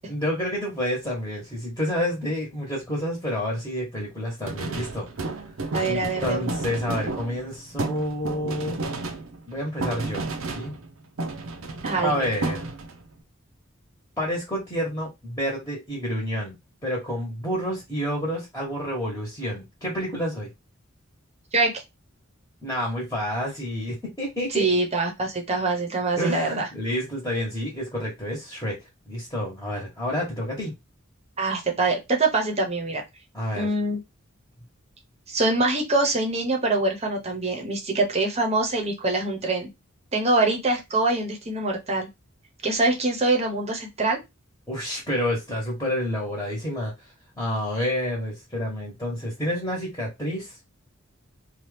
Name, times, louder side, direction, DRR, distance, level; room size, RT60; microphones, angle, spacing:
voice 1, 0.1-5.1 5.8-8.8 9.5-10.3 10.5-10.7 12.0-12.7 14.2-16.5 16.8-20.5 22.6-24.7 26.2-28.8 29.1-30.7 33.3-33.7 44.7-46.9 47.4-50.5, equal, 15° left, 1.1 m, -29 dB
sound 1, 4.4-10.9 11.2-13.1, right 3 dB, 80° right, 0.6 m, -32 dB
voice 2, 5.7-6.6 11.8-12.3 21.5-21.7 24.5-26.7 31.4-33.0 33.6-34.0 35.3-39.7 40.1-42.1 42.6-44.2, right 2 dB, 30° right, 0.9 m, -24 dB
2.8 x 2.4 x 3.3 m
head